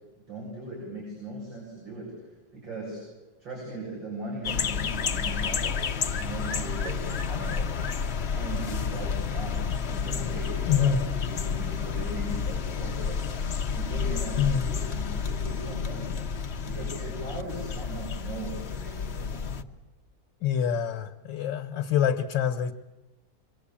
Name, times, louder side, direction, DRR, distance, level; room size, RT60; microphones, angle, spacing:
voice 1, 0.3-3.0 3.4-5.8 6.1-7.7 8.3-16.3 16.6-19.5, right 1 dB, 75° right, -4 dB, 8.6 m, -39 dB
sound 1, 4.4-19.6, left 6 dB, 45° left, 1.0 m, -30 dB
voice 2, 10.7-11.0 14.4-14.7 20.4-22.7, left 8 dB, 75° left, 5 dB, 1.9 m, -25 dB
26.0 x 24.5 x 8.7 m, 1.1 s
omnidirectional pair, 2.0 m